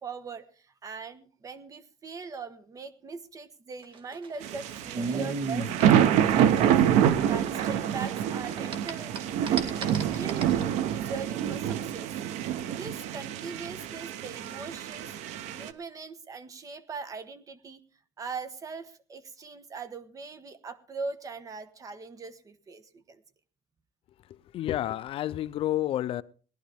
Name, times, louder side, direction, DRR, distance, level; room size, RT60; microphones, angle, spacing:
voice 1, 0.0-6.8 7.2-10.6 10.9-12.1 12.7-15.1 15.5-17.8 18.2-23.2, right 4 dB, 30° right, 1.2 m, -41 dB
sound 1, 3.8-8.2 8.4-10.6, right 4 dB, 50° right, 2.0 m, -35 dB
sound 2, 4.4-15.7, right 10 dB, 85° right, 0.8 m, -26 dB
voice 2, 24.3-26.2, left 13 dB, 55° left, 0.5 m, -30 dB
18.5 x 11.5 x 3.5 m
cardioid pair, 145°, 11 cm